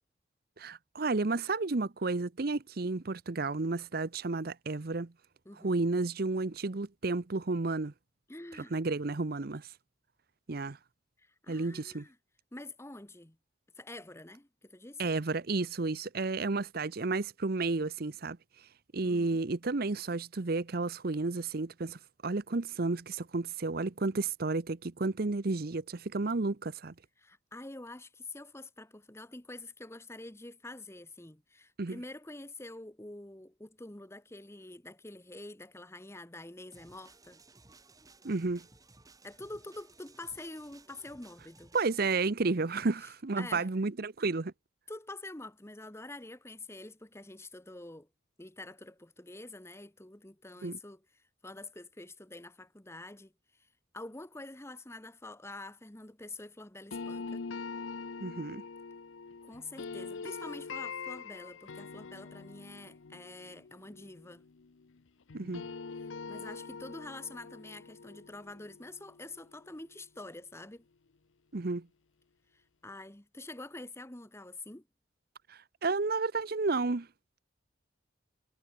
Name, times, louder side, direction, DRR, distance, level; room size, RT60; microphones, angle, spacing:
voice 1, 0.6-5.1 5.6-7.9 8.7-9.7 10.5-10.8 11.5-12.0 15.0-18.4 18.9-26.9 31.8-32.0 38.2-38.7 41.7-44.5 50.6-50.8 58.2-58.6 65.3-65.7 71.5-71.9 75.5-77.1, right 3 dB, 50° right, 0.8 m, -32 dB
voice 2, 5.4-5.8 8.3-8.8 11.2-12.2 12.5-13.4 13.8-15.0 19.0-19.4 27.2-37.4 39.2-41.7 43.4-43.7 44.9-48.1 48.4-53.3 53.9-57.4 59.4-64.4 66.0-70.8 72.5-74.8, left 2 dB, 15° left, 1.2 m, -47 dB
sound 1, 36.7-42.0, right 3 dB, 20° right, 2.7 m, -59 dB
sound 2, 56.9-65.0 65.3-70.2, left 5 dB, 85° left, 0.7 m, -44 dB
head